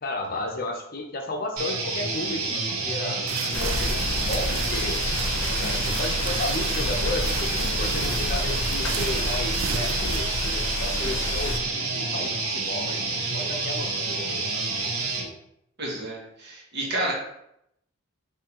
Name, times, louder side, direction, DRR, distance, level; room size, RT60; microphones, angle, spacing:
voice 1, 0.0-3.3 3.5-5.0 5.6-11.6 11.9-13.0 13.3-14.4, left 2 dB, 45° left, 3 dB, 0.7 m, -33 dB
sound 1, 1.6-15.3, right 3 dB, 85° right, 0.9 m, -29 dB
sound 2, 3.3-10.2, right 5 dB, 70° right, 0.4 m, -35 dB
sound 3, 3.5-11.6, left 2 dB, 80° left, 0.7 m, -30 dB
voice 2, 15.8-17.1, right 1 dB, 50° right, -3 dB, 1.5 m, -30 dB
6.1 x 2.8 x 2.9 m, 0.78 s
head